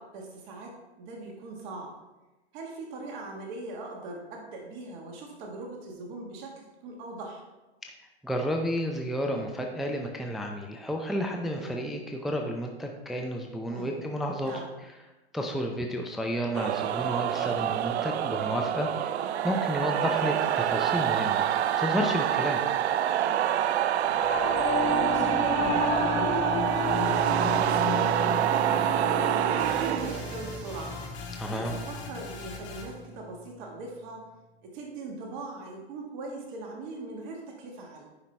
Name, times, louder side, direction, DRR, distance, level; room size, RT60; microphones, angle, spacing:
voice 1, 0.0-1.9 2.5-7.4 11.5-11.9 13.7-14.0 14.4-14.7 24.0-26.5 26.9-31.0 31.5-34.2 34.6-38.0, right 2 dB, 50° right, 1 dB, 1.5 m, -40 dB
voice 2, 8.2-14.5 15.3-19.2 19.4-22.6 31.4-31.7, equal, ahead, 2 dB, 0.5 m, -31 dB
sound 1, 16.5-30.7, right 11 dB, 75° right, 0.5 m, -26 dB
Singing / Musical instrument, 24.1-33.6, left 4 dB, 20° left, 0.9 m, -33 dB
sound 2, 29.6-33.1, left 4 dB, 55° left, 1.9 m, -42 dB
9.5 x 5.7 x 3.3 m, 1.1 s
hypercardioid pair, 110°, 33 cm